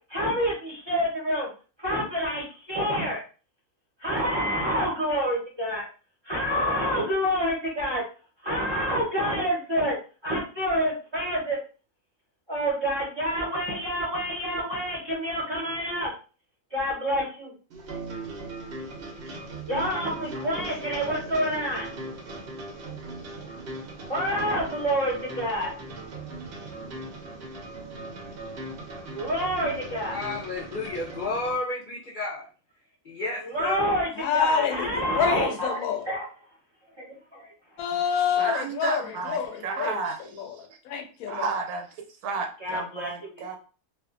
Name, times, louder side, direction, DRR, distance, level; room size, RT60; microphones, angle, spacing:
voice 1, 0.1-1.5 1.8-3.2 4.0-5.8 6.2-8.0 8.4-10.0 10.2-11.6 12.5-16.1 16.7-17.5 19.7-21.9 24.1-25.7 29.1-30.2 33.4-35.8 36.1-36.2 37.0-37.1 37.3-37.5 42.6-43.6, equal, 25° right, -6 dB, 0.7 m, -27 dB
sound 1, 17.7-31.6, right 2 dB, 55° right, 0.7 m, -39 dB
voice 2, 30.1-32.4 33.0-33.8, left 2 dB, 50° left, -7 dB, 0.6 m, -31 dB
voice 3, 34.2-36.1 37.8-40.0 40.4-41.5, left 7 dB, 75° left, 5 dB, 1.0 m, -27 dB
voice 4, 38.2-40.5 41.3-41.9 42.2-43.6, right 4 dB, 80° right, 4 dB, 1.1 m, -32 dB
2.5 x 2.4 x 2.4 m, 0.36 s
omnidirectional pair, 1.6 m